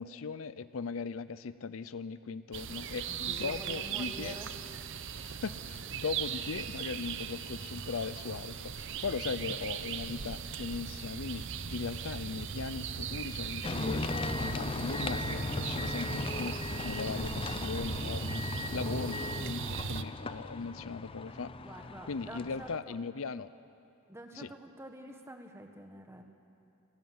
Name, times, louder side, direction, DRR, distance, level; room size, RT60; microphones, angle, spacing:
voice 1, 0.0-4.4 5.2-21.5 22.1-23.5 24.3-24.5, left 5 dB, 75° left, 15 dB, 0.6 m, -39 dB
sound 1, 2.5-20.0, right 6 dB, 60° right, 0.8 m, -38 dB
voice 2, 3.1-4.5 21.6-23.0 24.1-26.2, right 1 dB, 15° right, 4 dB, 1.5 m, -48 dB
sound 2, 13.6-22.8, left 2 dB, 25° left, 0.5 m, -37 dB
28.0 x 13.0 x 9.5 m, 2.7 s
head